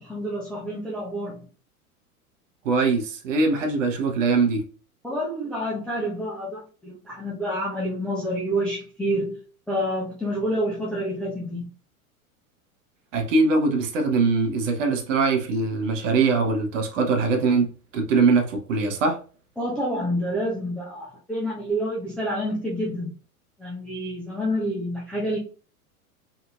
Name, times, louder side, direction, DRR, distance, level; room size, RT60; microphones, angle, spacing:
voice 1, 0.0-1.5 5.0-9.4 9.7-11.7 19.6-23.1 23.6-25.4, equal, 5° left, 0.3 m, -28 dB
voice 2, 2.6-4.6 13.1-19.2, right 4 dB, 55° right, 0.8 m, -22 dB
2.9 x 2.6 x 2.2 m
figure-of-eight pair, 95°, 44 cm